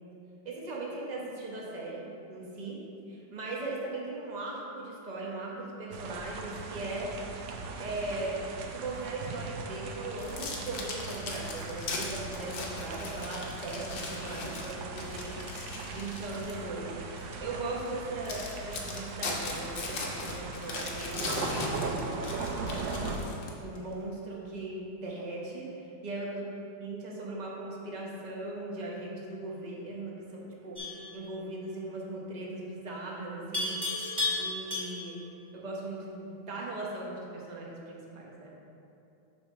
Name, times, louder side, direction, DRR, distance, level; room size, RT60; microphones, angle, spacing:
voice 1, 0.4-2.0 2.3-2.8 3.1-7.1 7.8-15.3 15.9-22.1 22.8-23.0 23.6-26.4 26.8-33.7 34.0-35.2 35.5-38.5, right 2 dB, 35° right, -3 dB, 0.7 m, -39 dB
sound 1, 5.9-23.2, right 4 dB, 70° right, 1.2 m, -39 dB
sound 2, 10.2-16.6 17.2-17.3 17.9-18.0 18.3-23.8, left 3 dB, 70° left, 1.5 m, -39 dB
Livestock farm animals working animals, 30.8-31.1 33.5-35.2, left 2 dB, 15° right, 1.5 m, -32 dB
7.6 x 3.6 x 5.6 m, 2.7 s
omnidirectional pair, 2.3 m